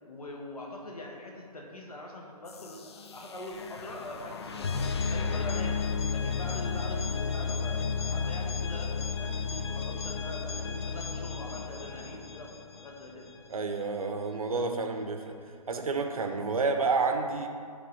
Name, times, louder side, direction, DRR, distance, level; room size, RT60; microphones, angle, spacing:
voice 1, 0.0-4.7 5.1-5.8 6.1-13.3, left 1 dB, 70° left, -1 dB, 1.5 m, -43 dB
sound 1, 2.5-13.3, left 5 dB, 45° left, 0.4 m, -33 dB
sound 2, 4.4-12.2, right 3 dB, 20° right, 0.7 m, -53 dB
voice 2, 13.5-15.3 15.7-17.5, right 4 dB, 65° right, 5 dB, 0.8 m, -29 dB
10.0 x 3.7 x 4.0 m, 2.2 s
figure-of-eight pair, 135°, 20 cm